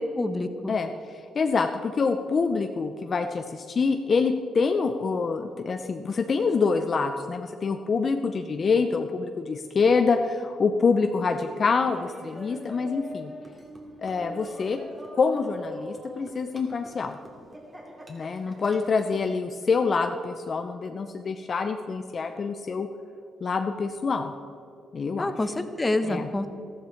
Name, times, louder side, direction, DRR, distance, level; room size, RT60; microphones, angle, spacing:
voice 1, 0.1-0.8 25.2-26.5, left 2 dB, 20° left, 8 dB, 1.0 m, -27 dB
voice 2, 0.7-13.3 14.0-14.8 15.1-17.2 18.1-22.9 23.4-24.3 24.9-25.3 26.1-26.3, left 4 dB, 45° left, 6 dB, 0.7 m, -26 dB
Laughter, 11.1-19.2, equal, 20° right, 2.7 m, -43 dB
14.0 x 14.0 x 4.5 m, 2.4 s
cardioid pair, 90°, 0 cm